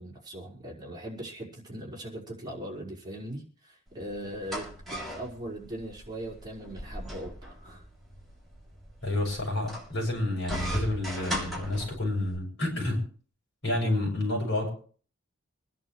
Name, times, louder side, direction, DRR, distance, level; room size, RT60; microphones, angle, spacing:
voice 1, 0.0-7.8, right 1 dB, 20° right, -2 dB, 4.7 m, -40 dB
sound 1, 3.9-12.4, equal, ahead, 6.5 m, -38 dB
voice 2, 9.0-13.0 13.6-14.7, left 1 dB, 60° left, 0 dB, 7.2 m, -29 dB
25.5 x 11.0 x 3.1 m, 0.42 s
head